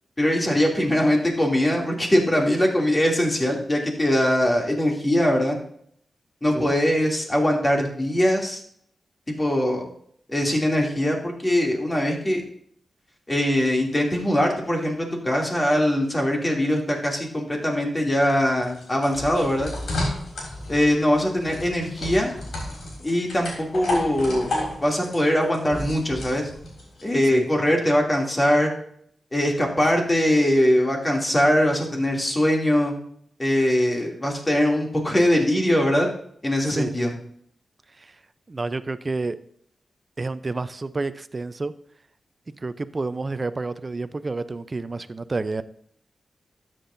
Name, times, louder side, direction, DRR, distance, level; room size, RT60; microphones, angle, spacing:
voice 1, 0.2-5.6 6.4-8.6 9.3-9.9 10.3-12.4 13.3-19.7 20.7-22.3 23.0-24.5 24.8-26.5 27.0-28.7 29.3-32.9 33.4-36.1 36.4-37.1, left 1 dB, 25° left, 0 dB, 2.7 m, -22 dB
sound 1, 18.4-27.1, left 1 dB, 90° left, 3.7 m, -32 dB
voice 2, 38.5-39.4 40.2-41.7 42.6-45.6, right 3 dB, 40° right, 13 dB, 0.6 m, -29 dB
12.5 x 7.6 x 2.7 m, 0.66 s
cardioid pair, 65°, 0 cm